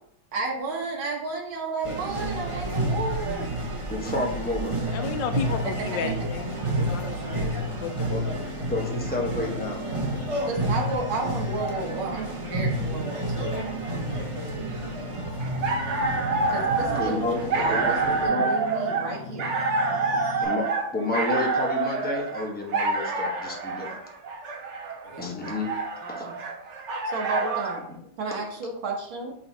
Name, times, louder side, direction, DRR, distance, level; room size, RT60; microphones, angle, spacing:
voice 1, 0.3-3.5 10.4-13.5 16.5-19.5 19.8-20.2 25.0-25.3 26.0-26.4 27.1-27.8 28.2-29.3, right 3 dB, 80° right, -1 dB, 2.0 m, -32 dB
sound 1, 1.8-18.2, right 1 dB, 25° right, 0.7 m, -30 dB
voice 2, 3.9-4.8 8.1-8.2 8.7-9.8 10.3-10.4 16.9-18.5 20.4-20.6 20.9-24.0 25.2-25.8 26.1-26.3 27.9-28.0, left 2 dB, 10° left, 0 dB, 0.4 m, -30 dB
voice 3, 4.9-7.5 7.8-8.5, left 7 dB, 75° left, 8 dB, 1.2 m, -33 dB
sound 2, 5.6-20.4, left 4 dB, 60° left, 2.0 m, -41 dB
sound 3, 15.4-27.8, right 3 dB, 55° right, 0.8 m, -27 dB
8.5 x 4.0 x 2.8 m, 0.73 s
omnidirectional pair, 2.2 m